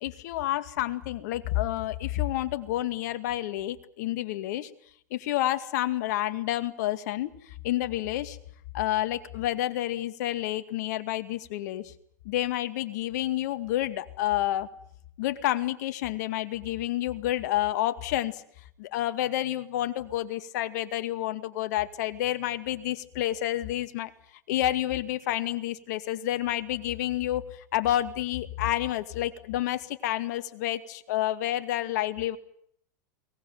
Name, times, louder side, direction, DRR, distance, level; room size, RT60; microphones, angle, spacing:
voice 1, 0.0-4.7 5.1-8.4 8.7-11.9 12.2-14.7 15.2-18.4 18.8-24.1 24.5-32.4, left 14 dB, 65° left, 11 dB, 2.2 m, -29 dB
22.5 x 19.0 x 9.5 m, 0.66 s
hypercardioid pair, 110°, 10 cm